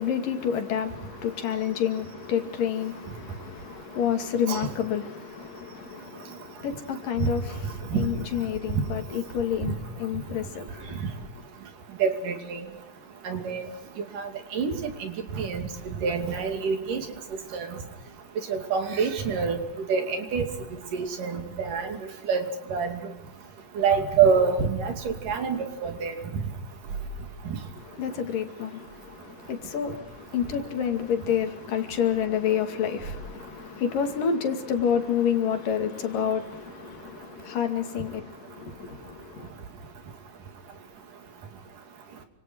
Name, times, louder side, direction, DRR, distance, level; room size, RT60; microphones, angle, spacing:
voice 1, 0.0-11.0 27.8-39.5, left 8 dB, 75° left, 4.0 m, -29 dB
voice 2, 12.0-12.7 13.3-13.7 14.1-15.7 16.0-17.1 17.5-17.7 18.5-19.6 19.9-20.5 20.9-22.0 22.3-22.4 22.7-23.0 23.8-26.2, right 6 dB, 70° right, 4.2 m, -26 dB
29.5 x 26.5 x 4.6 m
omnidirectional pair, 3.9 m